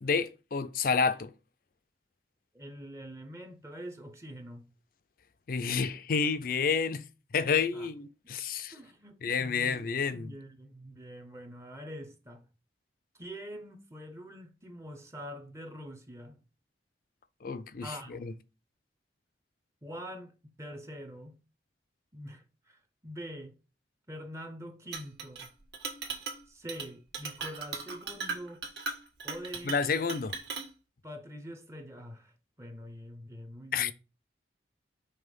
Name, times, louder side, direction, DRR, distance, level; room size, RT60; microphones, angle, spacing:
voice 1, 0.0-1.3 5.5-7.1 7.3-8.7 9.2-10.3 17.4-17.9 18.2-18.3 29.7-30.4 33.7-33.9, left 5 dB, 50° left, 0.5 m, -29 dB
voice 2, 2.5-4.7 7.7-7.9 8.7-12.5 13.1-16.4 17.8-18.3 19.8-21.4 22.1-23.5 24.1-25.5 26.5-28.7 29.2-29.8 31.0-33.9, equal, 15° right, 0.7 m, -45 dB
Chink clink, 24.9-25.5 25.7-26.4 26.7-26.9 27.1-30.7, right 4 dB, 65° right, 1.5 m, -38 dB
5.5 x 3.4 x 5.2 m
head